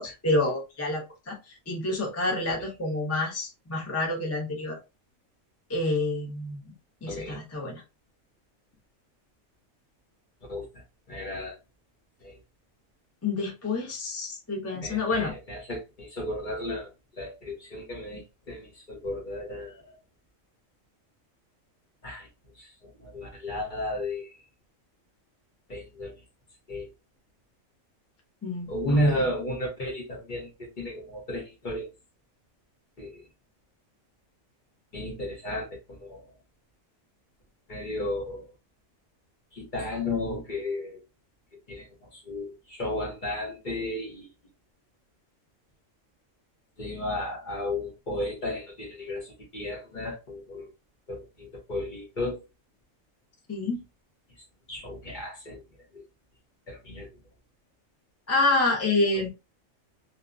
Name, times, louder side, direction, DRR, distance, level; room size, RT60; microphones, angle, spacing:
voice 1, 0.0-1.4 1.7-4.8 5.7-6.6 7.0-7.8 13.2-15.3 28.4-28.7 29.1-29.2 53.5-53.8 58.3-59.3, left 2 dB, 20° left, 0.4 m, -28 dB
voice 2, 7.1-7.4 10.5-10.7 11.1-11.5 12.2-12.4 14.8-16.9 17.2-18.2 18.5-19.8 22.0-22.3 22.6-22.7 23.0-24.3 25.7-26.2 26.7-26.9 28.7-30.5 30.8-31.9 33.0-33.2 34.9-35.7 36.0-36.2 37.7-38.4 39.5-41.0 41.7-41.9 42.1-44.3 46.8-50.7 51.1-52.4 54.7-55.6 55.9-56.0 56.7-57.1, left 1 dB, 45° left, 0.8 m, -33 dB
2.8 x 2.1 x 2.4 m
omnidirectional pair, 1.4 m